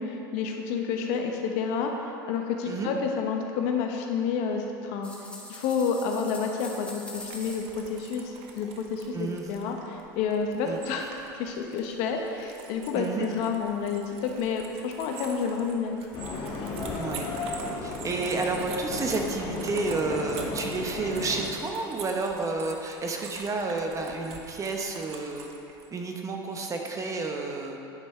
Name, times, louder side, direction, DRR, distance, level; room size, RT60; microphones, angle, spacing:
voice 1, 0.0-5.1 5.5-11.1 11.3-15.9, left 5 dB, 60° left, 3 dB, 1.0 m, -29 dB
sound 1, 5.0-8.1 9.2-9.3 10.6-10.9 11.3-11.4 12.1-12.2 12.9-13.0 14.9-15.2 15.6-15.7 16.6-16.7, left 1 dB, 10° left, 1.4 m, -44 dB
sound 2, 7.1-25.9, right 5 dB, 55° right, 1.0 m, -46 dB
voice 2, 9.1-9.5 10.6-10.8 12.9-13.3 16.9-17.3 17.8-25.5 25.9-27.8, right 3 dB, 25° right, 2 dB, 1.0 m, -30 dB
sound 3, 16.1-21.4, left 2 dB, 45° left, 1.8 m, -34 dB
10.0 x 5.6 x 4.4 m, 2.7 s
hypercardioid pair, 100°, 12 cm